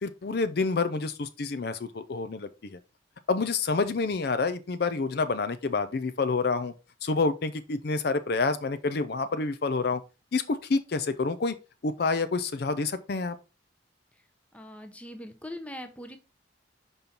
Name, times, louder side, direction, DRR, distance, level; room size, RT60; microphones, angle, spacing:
voice 1, 0.0-2.8 3.3-6.7 7.0-10.0 10.3-11.6 11.8-13.4, left 4 dB, 55° left, 0.5 m, -28 dB
voice 2, 14.5-16.2, left 1 dB, 5° left, 0.8 m, -41 dB
5.5 x 5.3 x 4.3 m
head